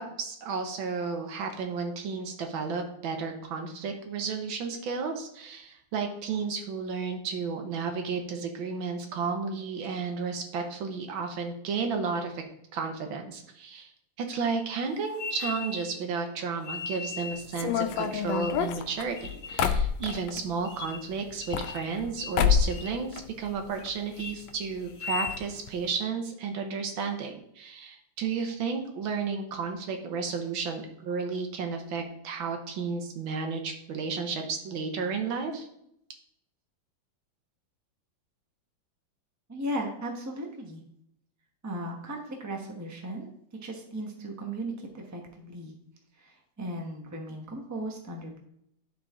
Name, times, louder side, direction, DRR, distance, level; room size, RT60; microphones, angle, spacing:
voice 1, 0.0-12.4 12.7-13.9 14.2-35.7, right 5 dB, 85° right, 5 dB, 1.8 m, -32 dB
sound 1, 15.1-16.0 16.6-17.5 17.9-18.7 19.2-19.6 20.1-20.2 20.6-21.1 21.4-21.9 22.2-22.4 22.7-23.0 23.4-23.8 24.1-24.4 24.9-25.4, left 5 dB, 50° left, 1.3 m, -38 dB
sound 2, 17.5-20.5 21.3-22.1 22.4-22.8 23.1-23.9 24.2-24.3 24.5-24.6 25.3-25.4 25.7-25.9, left 8 dB, 80° left, 1.3 m, -27 dB
voice 2, 39.5-40.8 41.6-43.3 43.6-45.8 46.1-48.4, right 1 dB, 15° right, 1 dB, 0.7 m, -36 dB
11.0 x 4.0 x 3.6 m, 0.74 s
omnidirectional pair, 2.1 m